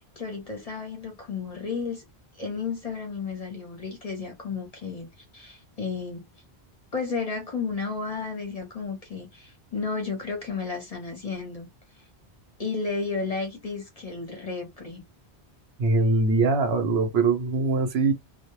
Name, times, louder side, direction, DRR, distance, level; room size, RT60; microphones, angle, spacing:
voice 1, 0.2-2.0 2.3-6.2 6.9-11.7 12.6-15.0, left 4 dB, 40° left, 0.6 m, -33 dB
voice 2, 15.8-18.1, right 3 dB, 70° right, 0.9 m, -22 dB
2.2 x 2.1 x 3.0 m
omnidirectional pair, 1.1 m